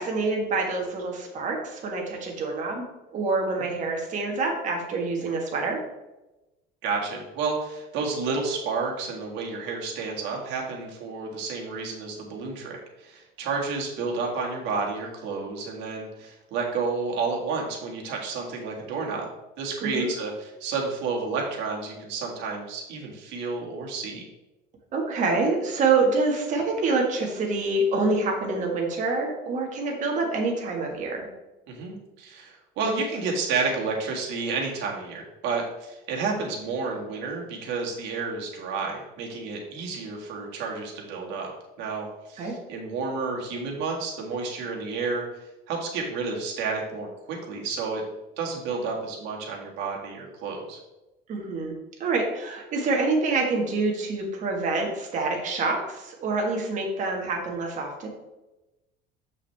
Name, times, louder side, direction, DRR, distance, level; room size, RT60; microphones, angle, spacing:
voice 1, 0.0-2.8 3.1-5.8 19.8-20.1 24.9-31.3 42.4-42.5 51.3-51.7 52.0-58.1, right 3 dB, 40° right, 0 dB, 1.6 m, -26 dB
voice 2, 6.8-19.3 19.6-24.2 31.7-41.5 41.8-45.2 45.7-48.0 48.4-50.8, right 4 dB, 65° right, -1 dB, 1.8 m, -31 dB
7.1 x 6.3 x 3.4 m, 1.0 s
cardioid pair, 170°, 20 cm